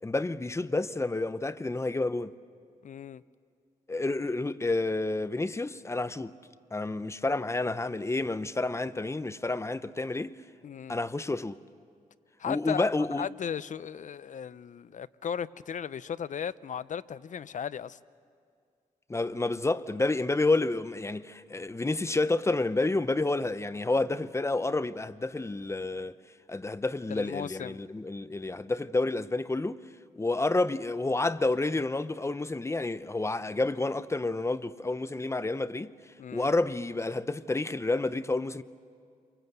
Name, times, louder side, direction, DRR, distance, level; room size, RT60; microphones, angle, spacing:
voice 1, 0.0-2.3 3.9-6.3 6.7-10.3 10.9-11.6 12.5-13.3 19.1-26.1 26.5-29.8 30.2-35.9 36.3-38.6, left 2 dB, 20° left, 0.7 m, -29 dB
voice 2, 2.8-3.2 10.6-11.0 12.4-12.9 13.2-18.0 27.1-27.8 36.2-36.5, left 8 dB, 60° left, 0.6 m, -36 dB
28.5 x 24.0 x 8.1 m
cardioid pair, 90°, 15 cm